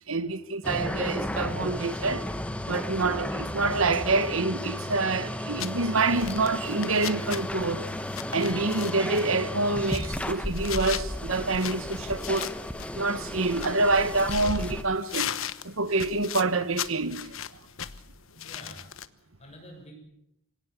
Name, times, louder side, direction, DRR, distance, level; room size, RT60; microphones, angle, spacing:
voice 1, 0.1-2.3 2.6-7.9 8.3-12.5 12.9-15.3 15.6-17.3, right 3 dB, 75° right, 1.3 m, -27 dB
sound 1, 0.6-14.8, left 1 dB, 5° left, 1.2 m, -34 dB
sound 2, 5.6-19.1, left 10 dB, 70° left, 1.1 m, -39 dB
voice 2, 18.4-18.9 19.2-19.9, equal, 30° left, 7.3 m, -48 dB
25.5 x 17.5 x 8.5 m
head